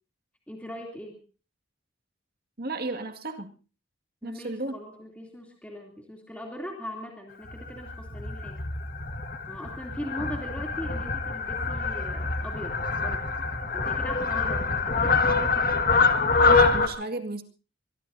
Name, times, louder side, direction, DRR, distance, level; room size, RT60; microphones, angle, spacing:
voice 1, 0.5-1.2 4.2-8.6 9.5-13.3 13.7-15.9, equal, 5° left, 0 dB, 3.0 m, -40 dB
voice 2, 2.6-3.6 4.2-4.7 16.5-17.4, right 2 dB, 50° right, 6 dB, 2.1 m, -33 dB
Fowl, 7.4-16.9, left 4 dB, 45° left, 1.8 m, -25 dB
23.5 x 22.5 x 2.8 m, 0.36 s
head